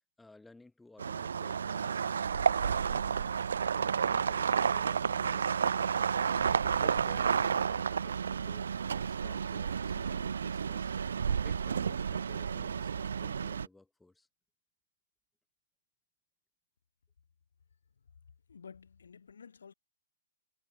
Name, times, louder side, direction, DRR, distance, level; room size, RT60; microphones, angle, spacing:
voice 1, 0.2-2.0 2.4-3.5 6.6-10.9 11.4-14.3, left 2 dB, 5° left, 1.8 m, -57 dB
sound 1, 1.0-13.7, right 7 dB, 80° right, 0.3 m, -31 dB
voice 2, 18.5-19.7, left 6 dB, 85° left, 0.8 m, -52 dB
hypercardioid pair, 145°, 0 cm